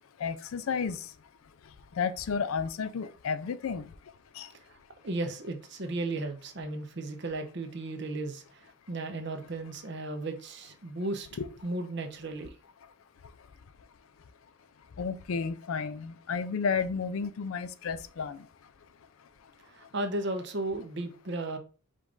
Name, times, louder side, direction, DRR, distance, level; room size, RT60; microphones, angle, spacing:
voice 1, 0.2-1.0 2.0-3.9 4.4-4.5 11.4-11.5 15.0-18.4, left 5 dB, 75° left, 0.4 m, -32 dB
voice 2, 5.0-11.3 11.6-12.5 19.7-21.6, right 2 dB, 55° right, 0.7 m, -35 dB
5.1 x 2.5 x 3.7 m
head